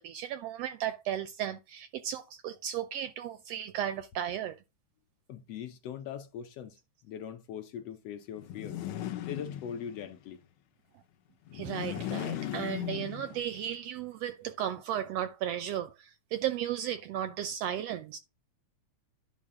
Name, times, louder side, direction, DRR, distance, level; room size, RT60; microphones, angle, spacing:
voice 1, 0.0-4.5 11.5-18.2, right 10 dB, 75° right, 1.5 m, -35 dB
voice 2, 5.3-6.8 7.0-8.8 9.2-10.4, left 8 dB, 70° left, 1.7 m, -41 dB
sound 1, 8.4-10.1 11.5-13.6, left 12 dB, 90° left, 1.1 m, -37 dB
11.0 x 5.5 x 3.7 m
omnidirectional pair, 3.3 m